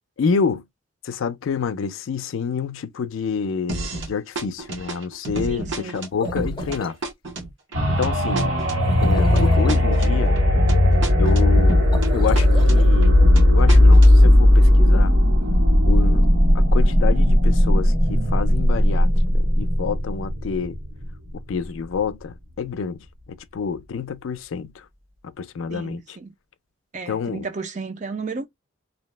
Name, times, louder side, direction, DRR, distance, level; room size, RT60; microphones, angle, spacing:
voice 1, 0.2-0.6 1.0-7.0 8.0-8.6 9.0-10.4 11.2-15.2 15.8-16.3 16.5-19.1 19.3-20.8 21.3-24.9 25.4-26.2 27.1-27.5, left 5 dB, 75° left, 0.4 m, -28 dB
sound 1, 3.7-4.1 4.4-12.1 12.4-14.4, right 2 dB, 65° right, 0.8 m, -31 dB
voice 2, 5.5-6.0 25.7-26.3 26.9-28.5, right 4 dB, 35° right, 0.4 m, -33 dB
sound 2, 6.0-7.0 8.8-9.7 11.8-12.9, left 2 dB, 25° left, 0.6 m, -36 dB
sound 3, 7.7-21.4 21.9-22.0, left 1 dB, 85° right, 1.4 m, -16 dB
2.7 x 2.0 x 3.1 m
head